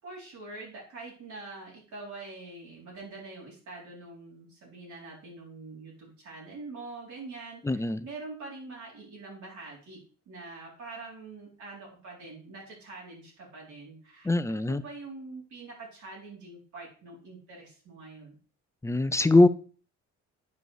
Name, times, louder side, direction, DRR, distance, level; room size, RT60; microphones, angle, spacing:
voice 1, 0.0-10.0 10.3-18.4, right 3 dB, 75° right, -4 dB, 4.3 m, -44 dB
voice 2, 7.7-8.0 14.3-14.8 18.8-19.5, left 2 dB, 10° left, 14 dB, 0.5 m, -22 dB
9.4 x 5.1 x 4.9 m, 0.40 s
cardioid pair, 90°, 30 cm